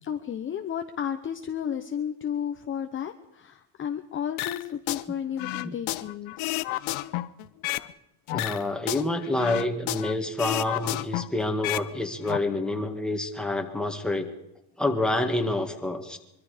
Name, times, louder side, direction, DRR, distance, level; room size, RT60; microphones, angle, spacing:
voice 1, 0.0-6.5, left 8 dB, 25° left, 6 dB, 0.9 m, -33 dB
sound 1, 4.4-5.0 5.4-7.9 8.3-10.1 10.4-11.9 12.1-12.4, left 18 dB, 85° left, 1.2 m, -31 dB
voice 2, 8.3-14.3 14.8-16.2, left 2 dB, ahead, 3 dB, 1.9 m, -28 dB
24.0 x 24.0 x 5.1 m, 0.84 s
cardioid pair, 180°, 47 cm